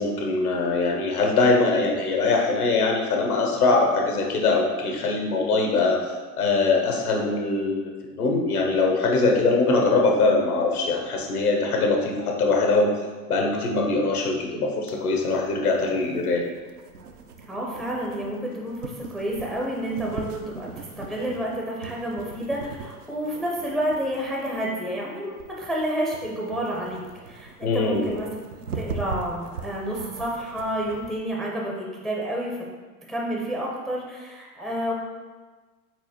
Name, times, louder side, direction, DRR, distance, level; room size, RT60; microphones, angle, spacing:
voice 1, 0.0-16.4 27.6-28.1, left 3 dB, 80° left, 1 dB, 0.9 m, -22 dB
sound 1, 14.9-31.2, right 4 dB, 90° right, 0.5 m, -40 dB
voice 2, 17.5-28.3 28.7-32.6 33.1-34.9, right 1 dB, ahead, -2 dB, 0.4 m, -29 dB
4.6 x 4.0 x 2.9 m, 1.3 s
figure-of-eight pair, 75°, 44 cm